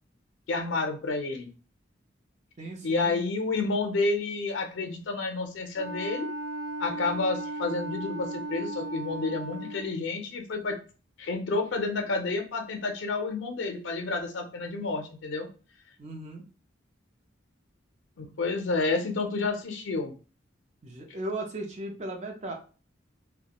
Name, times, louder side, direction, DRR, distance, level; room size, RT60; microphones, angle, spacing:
voice 1, 0.5-1.5 2.8-6.3 6.8-10.8 11.2-15.5 18.2-20.1, left 3 dB, 75° left, 4 dB, 0.4 m, -30 dB
voice 2, 2.6-3.2 16.0-16.4 20.8-22.5, right 1 dB, 35° right, 2 dB, 0.5 m, -36 dB
Wind instrument woodwind instrument, 5.8-10.0, right 1 dB, 90° right, 0.7 m, -36 dB
2.3 x 2.1 x 2.8 m, 0.36 s
head